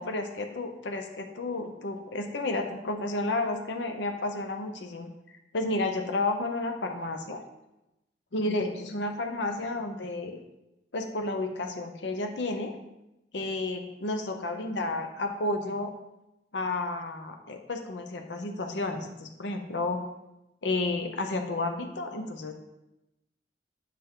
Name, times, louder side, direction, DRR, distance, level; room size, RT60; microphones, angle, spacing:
voice 1, 0.0-7.4 8.3-10.4 10.9-12.8 13.3-15.9 16.5-20.0 20.6-22.5, left 2 dB, 75° left, 5 dB, 0.7 m, -31 dB
8.3 x 5.6 x 3.7 m, 0.92 s
head